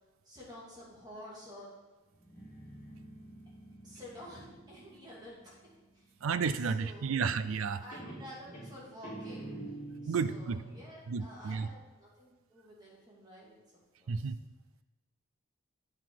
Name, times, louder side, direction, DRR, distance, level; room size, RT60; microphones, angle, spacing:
voice 1, 0.2-1.7 3.8-6.1 6.6-7.3 7.6-9.6 10.0-13.6 14.0-14.3, equal, 20° right, -5 dB, 2.2 m, -50 dB
Guitar, 2.1-5.7 7.3-7.7 7.9-10.9, right 2 dB, 40° left, 3.0 m, -47 dB
voice 2, 6.2-7.8 10.1-10.6 11.1-11.7 14.1-14.4, right 5 dB, 80° right, 13 dB, 0.4 m, -32 dB
8.7 x 5.9 x 4.6 m, 1.2 s
head